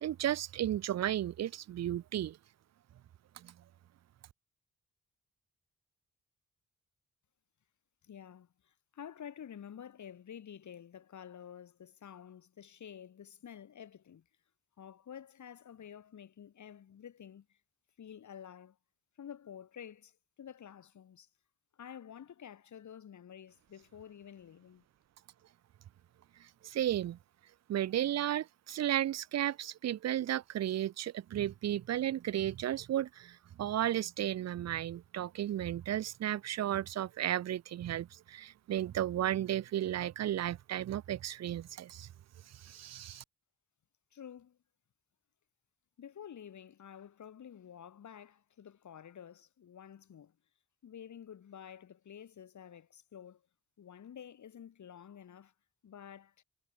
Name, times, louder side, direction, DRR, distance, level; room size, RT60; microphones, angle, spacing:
voice 1, 0.0-2.4 3.4-3.5 26.4-27.2 27.7-42.1 42.5-43.2, right 12 dB, 55° right, 0.5 m, -34 dB
voice 2, 8.0-14.2 14.8-17.6 18.0-18.8 19.2-20.1 20.4-21.3 21.7-24.8 44.1-44.6 46.0-50.4 50.8-53.4 53.8-55.5 55.8-56.4, left 9 dB, 65° left, 2.2 m, -50 dB
cardioid pair, 100°, 31 cm